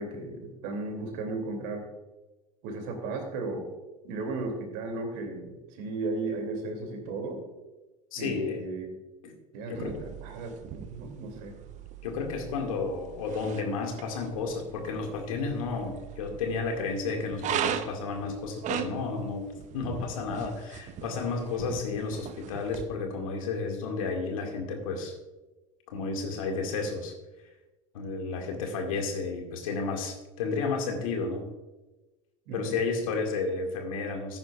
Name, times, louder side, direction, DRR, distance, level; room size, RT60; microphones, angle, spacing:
voice 1, 0.0-1.9 2.6-3.7 4.0-7.4 8.2-8.9 9.5-11.5 32.5-32.7, right 2 dB, 60° right, 4 dB, 2.8 m, -35 dB
voice 2, 8.1-8.6 9.2-9.3 9.7-10.0 12.0-19.4 19.7-25.1 25.9-27.1 27.9-31.5 32.5-34.4, left 4 dB, 70° left, 3 dB, 2.1 m, -32 dB
sound 1, 9.7-22.8, right 10 dB, 40° right, 0.8 m, -39 dB
14.5 x 10.5 x 2.4 m, 1.1 s
hypercardioid pair, 80°, 18 cm